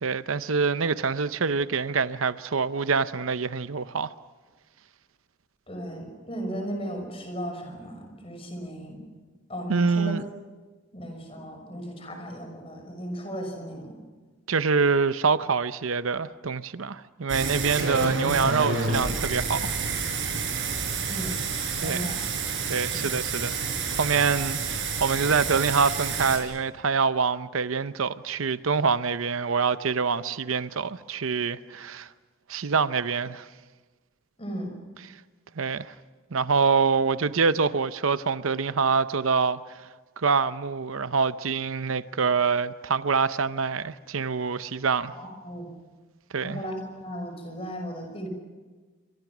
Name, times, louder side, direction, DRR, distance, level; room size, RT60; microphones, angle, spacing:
voice 1, 0.0-4.1 9.7-10.2 14.5-19.7 20.0-20.1 21.8-22.1 22.7-23.6 24.0-32.1 32.5-33.5 35.0-35.1 35.6-35.9 36.3-39.6 40.2-45.1 46.3-46.6, right 5 dB, 80° right, 0.7 m, -25 dB
voice 2, 5.7-9.0 9.5-10.2 10.9-13.9 21.1-21.4 21.7-22.2 34.4-34.7 45.1-45.7 46.4-46.8 47.0-48.3, equal, 25° left, 5.9 m, -35 dB
sound 1, 17.3-26.4, right 4 dB, 65° right, 6.3 m, -29 dB
28.0 x 25.5 x 6.1 m
head